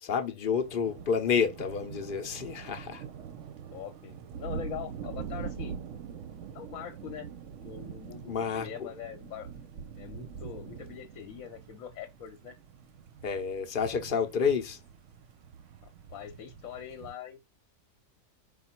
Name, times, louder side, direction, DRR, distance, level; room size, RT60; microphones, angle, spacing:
voice 1, 0.0-3.0 8.3-8.9 13.2-14.8, left 6 dB, 50° left, 0.6 m, -29 dB
sound 1, 0.6-17.1, right 7 dB, 70° right, 0.9 m, -44 dB
voice 2, 3.7-5.8 6.5-7.3 7.6-9.5 9.9-12.5 15.8-17.4, left 9 dB, 80° left, 1.0 m, -43 dB
4.9 x 2.3 x 4.3 m
omnidirectional pair, 1.4 m